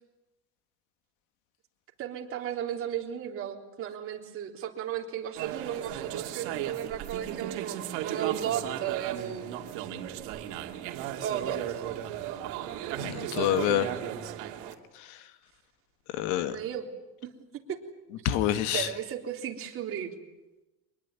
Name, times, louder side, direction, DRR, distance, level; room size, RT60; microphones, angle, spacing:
voice 1, 2.0-9.7 11.2-11.9 16.5-16.9 17.2-17.8 18.7-20.1, right 10 dB, 45° right, 2 dB, 3.6 m, -35 dB
sound 1, 5.3-14.7, right 11 dB, 80° right, 2.7 m, -36 dB
voice 2, 13.0-13.9 15.0-15.2 16.1-16.6 18.2-18.9, left 12 dB, 75° left, 10 dB, 2.0 m, -27 dB
24.5 x 20.5 x 9.7 m, 1.0 s
cardioid pair, 140°, 31 cm